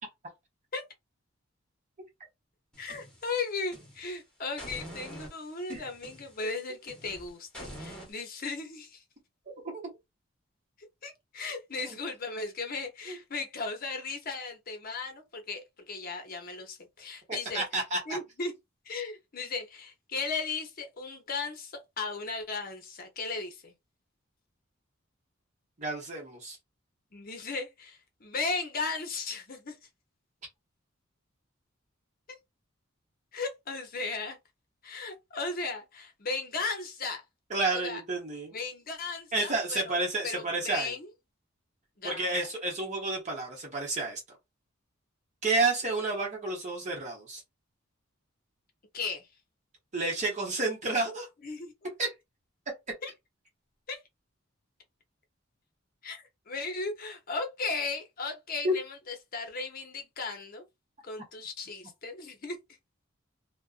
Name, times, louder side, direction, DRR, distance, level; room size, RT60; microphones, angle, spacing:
sound 1, 2.7-4.2 4.6-8.1, equal, 5° left, 1.1 m, -46 dB
voice 1, 2.8-9.0 11.0-17.6 18.1-18.5 18.9-23.7 27.1-29.8 33.3-34.4 34.8-37.2 37.7-38.0 38.5-40.0 40.2-41.1 42.0-42.3 48.9-49.3 51.4-51.7 53.0-53.1 53.9-54.0 56.0-60.6 61.0-62.6, left 4 dB, 45° left, 0.7 m, -36 dB
voice 2, 17.5-18.2 25.8-26.6 37.5-38.6 39.3-40.9 42.0-44.2 45.4-47.4 49.9-51.3 52.0-52.1 58.6-58.7, right 2 dB, 35° right, 0.9 m, -30 dB
2.5 x 2.2 x 2.4 m
head